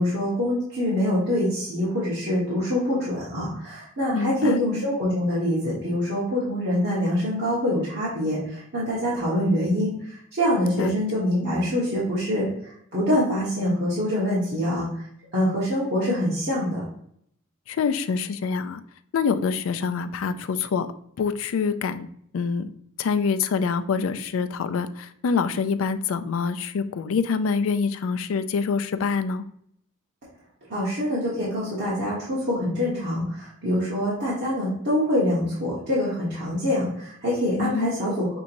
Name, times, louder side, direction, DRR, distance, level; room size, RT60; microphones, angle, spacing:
voice 1, 0.0-15.0 15.3-16.9 30.7-38.4, left 1 dB, 60° right, -9 dB, 1.3 m, -25 dB
voice 2, 4.1-4.6 10.8-10.9 17.7-18.8 19.1-20.9 21.2-22.1 22.3-22.7 23.0-29.4 37.6-37.9, left 5 dB, 70° left, 11 dB, 0.4 m, -25 dB
6.1 x 2.9 x 2.6 m, 0.68 s
head